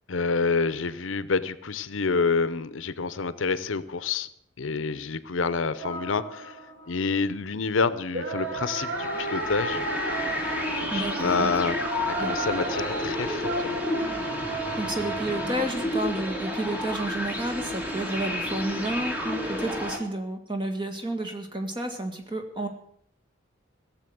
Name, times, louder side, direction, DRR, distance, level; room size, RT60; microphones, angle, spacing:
voice 1, 0.1-4.3 4.6-6.6 6.9-9.9 10.7-11.8 12.2-13.8, left 4 dB, 85° left, 15 dB, 0.7 m, -28 dB
sound 1, 5.8-7.2 8.1-15.8, right 2 dB, 70° right, 2.6 m, -33 dB
sound 2, 8.4-20.0, left 1 dB, 10° right, 1.6 m, -31 dB
voice 2, 10.9-11.5 12.2-12.3 14.8-22.7, right 1 dB, 25° right, 5 dB, 1.7 m, -31 dB
16.0 x 7.4 x 7.7 m, 0.70 s
head